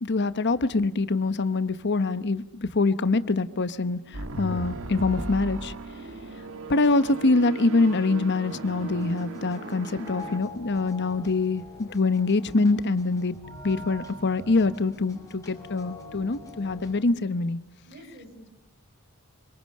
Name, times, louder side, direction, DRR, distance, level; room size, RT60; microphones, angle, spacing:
voice 1, 0.0-5.7 6.7-13.4 13.6-17.6, left 3 dB, 50° left, 14 dB, 0.9 m, -24 dB
sound 1, 4.1-10.4, right 2 dB, 65° right, 1.6 m, -37 dB
sound 2, 8.5-17.0, left 1 dB, 15° left, 6.0 m, -44 dB
voice 2, 17.9-18.5, right 1 dB, 45° right, 5 dB, 4.7 m, -48 dB
26.0 x 24.5 x 6.6 m, 0.90 s
head